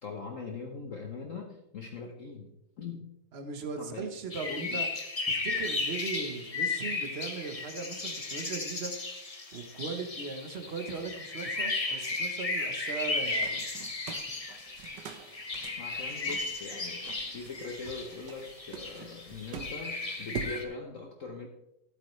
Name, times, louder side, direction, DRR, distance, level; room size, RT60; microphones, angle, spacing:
voice 1, 0.0-3.1 3.8-4.1 4.5-4.8 15.8-21.5, left 4 dB, 50° left, 2 dB, 1.0 m, -41 dB
voice 2, 3.3-4.9 5.3-9.0 9.5-13.6, right 4 dB, 40° right, 6 dB, 1.0 m, -38 dB
sound 1, 4.3-20.6, left 3 dB, 30° left, 0.7 m, -35 dB
sound 2, 13.4-20.6, right 7 dB, 65° right, 1.3 m, -45 dB
13.5 x 8.4 x 3.2 m, 0.86 s
omnidirectional pair, 2.3 m